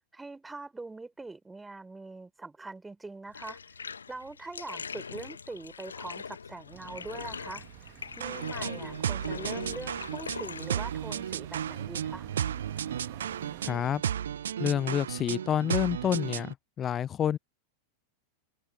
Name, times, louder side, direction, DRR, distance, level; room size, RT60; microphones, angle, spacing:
voice 1, 0.1-3.6 4.1-12.3, right 3 dB, 10° right, 5.4 m, -43 dB
Bathtub (filling or washing), 3.3-14.9, left 6 dB, 75° left, 1.7 m, -43 dB
sound 1, 6.7-13.7, right 40 dB or more, 45° right, 1.8 m, -48 dB
sound 2, 8.2-16.5, right 9 dB, 65° right, 0.9 m, -34 dB
voice 2, 13.6-14.0 14.6-17.4, left 9 dB, 25° left, 1.0 m, -28 dB
figure-of-eight pair, 90°, 0 cm